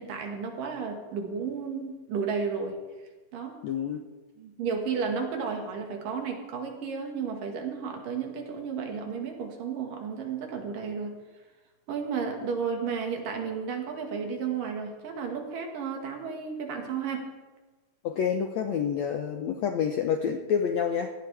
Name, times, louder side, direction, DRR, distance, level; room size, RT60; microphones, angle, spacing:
voice 1, 0.0-2.8 3.3-3.6 4.4-11.2 11.9-17.3, right 6 dB, 65° right, 3 dB, 3.3 m, -33 dB
voice 2, 3.6-4.0 18.0-21.1, left 7 dB, 75° left, 5 dB, 1.6 m, -28 dB
17.5 x 15.0 x 3.4 m, 1.3 s
omnidirectional pair, 4.2 m